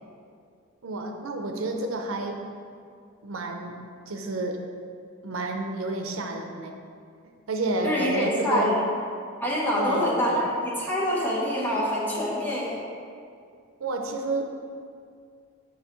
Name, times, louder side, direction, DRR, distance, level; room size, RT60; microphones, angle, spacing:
voice 1, 0.8-2.5 3.2-3.8 4.1-4.6 5.2-6.8 7.5-8.8 9.8-10.4 13.8-14.4, right 2 dB, 90° right, 4 dB, 0.6 m, -30 dB
voice 2, 7.8-8.8 9.4-12.8, left 1 dB, 10° left, -6 dB, 1.0 m, -25 dB
6.2 x 5.5 x 3.1 m, 2.3 s
head